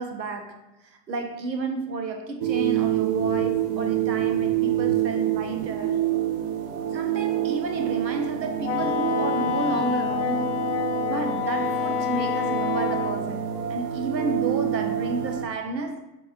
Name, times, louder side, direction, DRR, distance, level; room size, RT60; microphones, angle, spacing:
voice 1, 0.0-6.1 6.9-10.6 11.1-16.0, right 3 dB, 85° right, 0.8 m, -31 dB
sound 1, 2.4-15.4, right 11 dB, 35° right, 0.4 m, -27 dB
Wind instrument woodwind instrument, 8.6-13.2, left 8 dB, 45° left, 0.5 m, -27 dB
6.4 x 3.0 x 2.6 m
figure-of-eight pair, 80°, 49 cm